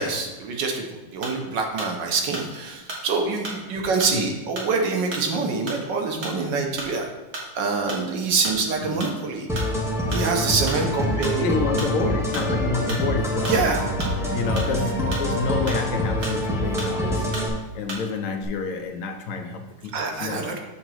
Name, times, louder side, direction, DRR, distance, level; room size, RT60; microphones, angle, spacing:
voice 1, 0.0-7.1 7.6-9.5 10.1-11.4 13.5-13.8 19.9-20.6, right 4 dB, 85° right, 2 dB, 1.7 m, -25 dB
sound 1, 1.2-1.5 1.8-2.0 2.3-3.0 3.4-3.7 4.0-4.2 4.6-4.7 5.1-5.3 5.7-5.9 6.2-6.4 6.8-7.0 7.3-7.6 7.9-8.1 8.4-8.6 9.0-9.2 9.5-9.7 10.1-10.3 10.7-10.9 11.2-11.4 11.8-12.0 12.3-12.5 12.9-13.1 13.4-13.6 14.0-14.7 15.1-15.3 15.7-15.8 16.2-16.5 16.8-17.0 17.3-17.5 17.9-18.1 18.3-18.4, right 2 dB, 60° right, 2.1 m, -34 dB
sound 2, 9.5-17.5, equal, ahead, 1.0 m, -26 dB
voice 2, 11.4-13.6 14.3-17.3 17.7-20.6, left 4 dB, 55° left, 4 dB, 1.1 m, -28 dB
7.1 x 3.9 x 6.2 m, 1.1 s
omnidirectional pair, 1.9 m